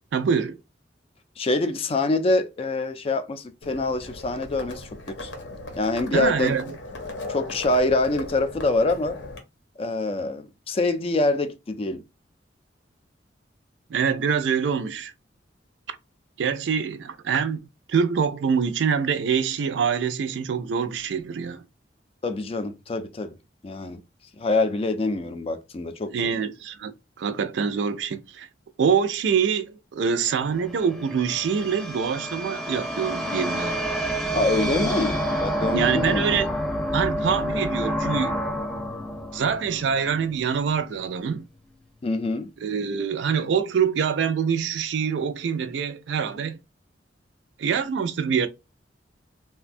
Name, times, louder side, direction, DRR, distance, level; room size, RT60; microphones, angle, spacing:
voice 1, 0.1-0.6 6.0-6.8 13.9-15.1 15.9-16.0 16.4-21.6 26.1-26.9 27.2-28.5 28.8-33.8 35.7-36.5 36.9-38.4 39.3-41.5 42.6-46.6 47.6-48.5, right 6 dB, 75° right, 0.4 m, -25 dB
voice 2, 1.4-5.3 5.8-6.6 7.3-9.2 9.8-12.0 22.2-23.4 23.6-24.0 24.4-26.3 34.3-36.4 42.0-42.5, left 2 dB, 30° left, 0.4 m, -25 dB
Livestock farm animals working animals, 3.6-9.4, left 2 dB, 85° left, 0.8 m, -38 dB
sound 1, 30.3-40.6, equal, 5° left, 0.7 m, -29 dB
3.2 x 2.2 x 2.5 m
head